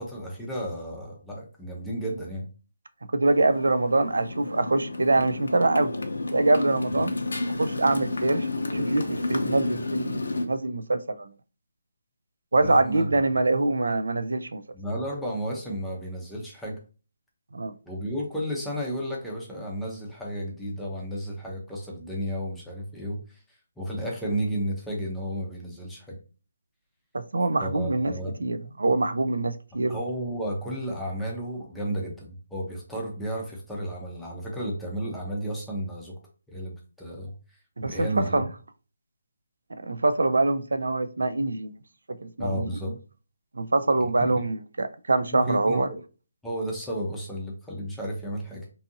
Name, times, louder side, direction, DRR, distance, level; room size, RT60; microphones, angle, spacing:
voice 1, 0.0-2.5 6.9-7.0 12.6-13.1 14.7-16.8 17.8-26.2 27.6-28.3 29.9-36.1 36.5-38.4 42.4-42.9 44.2-44.5 45.3-46.0 46.4-48.7, equal, ahead, 0.6 m, -33 dB
voice 2, 3.1-5.9 6.3-7.1 7.6-8.5 8.7-11.3 12.5-14.6 17.5-17.8 27.1-30.0 37.8-38.5 39.8-41.8 42.1-42.8 43.5-45.9, right 2 dB, 90° right, 0.3 m, -24 dB
Motorcycle, 3.2-10.5, left 2 dB, 90° left, 0.5 m, -31 dB
2.6 x 2.5 x 2.6 m
hypercardioid pair, 165°, 0 cm